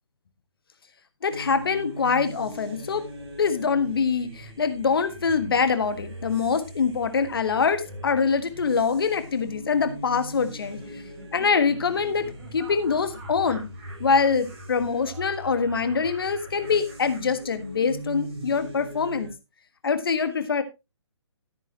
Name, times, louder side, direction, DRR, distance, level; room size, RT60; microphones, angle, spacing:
voice 1, 1.2-3.1 3.4-11.0 11.3-13.7 14.0-19.3 19.8-20.6, left 5 dB, 50° left, 1.5 m, -24 dB
sound 1, 1.3-19.3, equal, 55° right, 5.1 m, -41 dB
Laughter, 10.5-18.0, right 2 dB, 30° right, 6.0 m, -49 dB
13.5 x 9.2 x 2.9 m
figure-of-eight pair, 140°, 16 cm